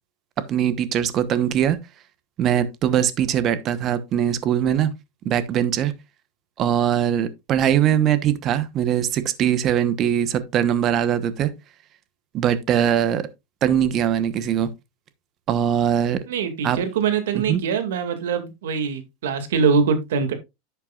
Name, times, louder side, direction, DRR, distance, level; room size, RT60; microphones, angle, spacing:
voice 1, 0.5-1.8 2.4-4.9 5.2-5.9 6.6-11.5 12.3-13.2 13.6-14.7 15.5-16.2 16.6-16.8 17.3-17.6, right 9 dB, 30° right, 1.0 m, -21 dB
voice 2, 16.3-20.3, right 6 dB, 85° right, 2.1 m, -23 dB
10.5 x 8.1 x 2.4 m
supercardioid pair, 165°, 0 cm